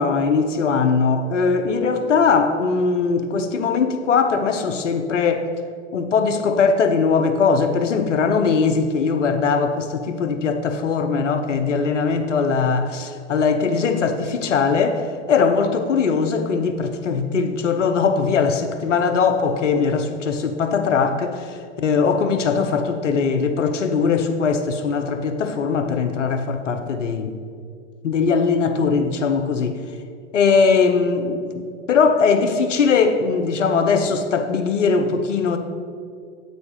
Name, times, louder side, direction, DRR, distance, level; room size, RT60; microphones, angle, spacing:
voice 1, 0.0-5.5 5.9-27.4 28.0-29.8 30.3-35.6, left 5 dB, 85° left, 7 dB, 0.9 m, -20 dB
9.6 x 8.2 x 3.2 m, 2.2 s
hypercardioid pair, 100°, 36 cm